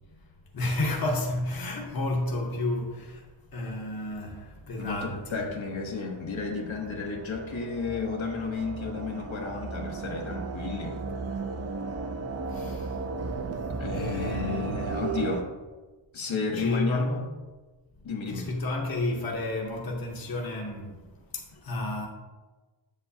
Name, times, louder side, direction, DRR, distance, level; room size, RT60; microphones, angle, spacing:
voice 1, 0.5-5.5 12.5-13.1 13.7-15.1 16.5-17.2 18.3-22.1, left 2 dB, 50° left, 1.0 m, -32 dB
voice 2, 4.8-11.0 13.8-15.5 16.1-17.2 18.0-18.5, left 4 dB, 80° left, 1.3 m, -32 dB
sound 1, 5.3-15.4, right 4 dB, 35° right, 0.5 m, -35 dB
7.8 x 7.1 x 2.8 m
wide cardioid pair, 120°, 47 cm